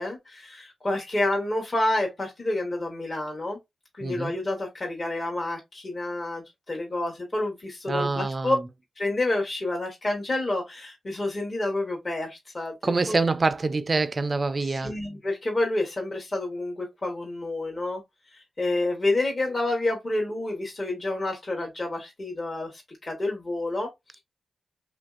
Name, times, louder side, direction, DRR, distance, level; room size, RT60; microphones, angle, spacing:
voice 1, 0.0-3.6 3.9-8.6 9.0-13.2 13.7-13.8 14.6-18.0 18.3-23.9, left 2 dB, 40° left, 1.0 m, -29 dB
voice 2, 4.0-4.3 7.9-8.6 12.8-14.9, right 3 dB, 40° right, 0.3 m, -26 dB
3.0 x 2.5 x 2.4 m
cardioid pair, 55°, 0 cm